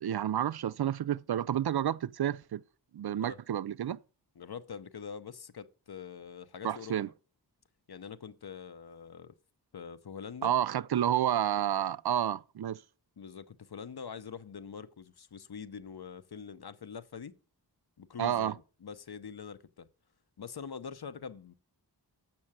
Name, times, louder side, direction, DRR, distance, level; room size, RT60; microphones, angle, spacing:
voice 1, 0.0-2.6 2.9-4.0 6.6-7.1 10.4-12.8 18.2-18.5, right 10 dB, 65° right, 0.5 m, -30 dB
voice 2, 4.4-6.9 7.9-9.3 9.7-10.5 13.2-17.3 18.0-19.9 20.4-21.5, left 6 dB, 65° left, 0.8 m, -44 dB
7.7 x 6.0 x 7.2 m
wide cardioid pair, 50°, 41 cm